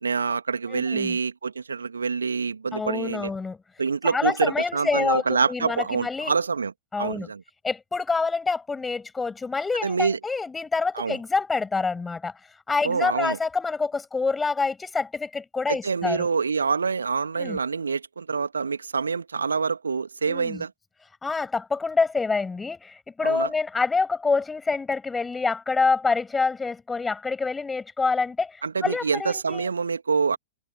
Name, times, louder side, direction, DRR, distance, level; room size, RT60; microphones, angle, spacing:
voice 1, 0.0-3.3 3.8-7.4 9.8-10.2 10.9-11.2 12.8-13.4 15.7-20.7 23.2-23.5 28.6-30.4, right 5 dB, 70° right, 2.3 m, -26 dB
voice 2, 0.7-1.2 2.7-3.6 4.0-6.3 6.9-7.3 7.6-12.3 12.7-16.3 17.4-17.6 20.3-20.6 21.2-29.6, left 4 dB, 10° left, 7.1 m, -26 dB
figure-of-eight pair, 100°, 0 cm